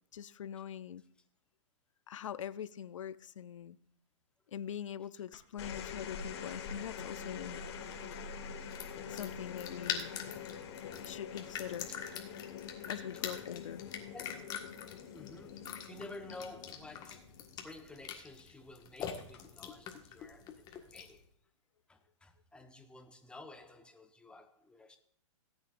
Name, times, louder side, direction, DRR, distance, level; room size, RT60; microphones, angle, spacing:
voice 1, 0.1-1.0 2.1-3.8 4.5-7.6 9.1-10.2 11.0-11.9 12.9-13.8, left 9 dB, 80° left, 0.6 m, -43 dB
sound 1, 5.3-17.9 19.2-19.6, left 6 dB, 55° left, 1.9 m, -45 dB
sound 2, 6.4-21.2, left 8 dB, 25° left, 1.6 m, -45 dB
voice 2, 14.1-14.4 15.1-17.4 17.6-21.2 21.9-25.0, left 2 dB, 5° left, 1.1 m, -52 dB
17.5 x 9.0 x 2.6 m
hypercardioid pair, 130°, 16 cm